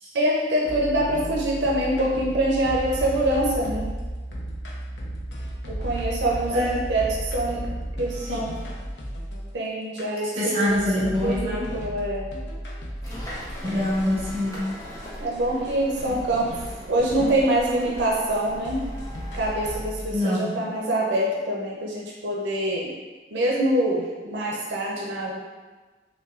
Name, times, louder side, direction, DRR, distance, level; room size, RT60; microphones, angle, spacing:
voice 1, 0.1-3.9 5.7-7.6 8.0-8.5 9.5-12.3 15.2-16.5 16.9-18.8 19.3-22.9 23.3-25.4, right 1 dB, 90° right, -3 dB, 0.6 m, -25 dB
sound 1, 0.6-9.5 10.0-10.1 10.6-15.0 15.3-15.4 15.6-15.7 16.0-18.4 18.6-20.4, equal, 80° left, 0.7 m, -34 dB
voice 2, 6.5-6.8 8.3-8.5 10.3-11.7 13.6-14.6 16.1-16.2 20.1-20.6, left 1 dB, 35° right, -9 dB, 1.2 m, -25 dB
sound 2, 13.0-19.8, equal, 20° left, 0.7 m, -38 dB
5.2 x 2.3 x 2.4 m, 1.3 s
head